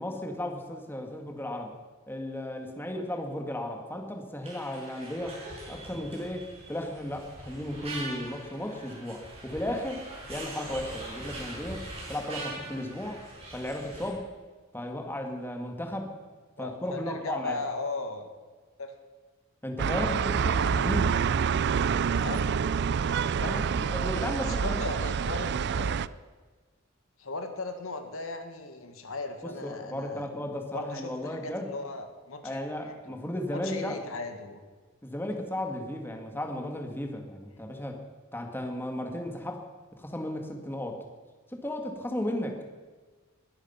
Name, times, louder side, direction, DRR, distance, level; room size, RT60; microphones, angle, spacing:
voice 1, 0.0-1.7 2.1-5.4 5.7-10.0 10.3-13.2 13.5-14.2 14.7-16.1 16.6-17.6 19.6-21.2 23.4-24.9 29.4-31.7 32.4-34.0 35.0-38.0 38.3-39.6 39.9-41.0 41.5-42.6, left 1 dB, 10° left, 3 dB, 1.9 m, -35 dB
sound 1, 4.4-14.1, right 2 dB, 30° right, 6.5 m, -42 dB
voice 2, 16.6-18.3 18.8-18.9 20.1-21.0 22.2-22.6 23.3-23.6 24.4-26.0 27.2-30.3 30.7-32.6 32.8-33.1 33.5-34.6, left 3 dB, 75° left, 6 dB, 1.8 m, -37 dB
sound 2, 19.8-26.1, right 6 dB, 55° right, 0.4 m, -27 dB
21.0 x 11.5 x 5.8 m, 1.4 s
head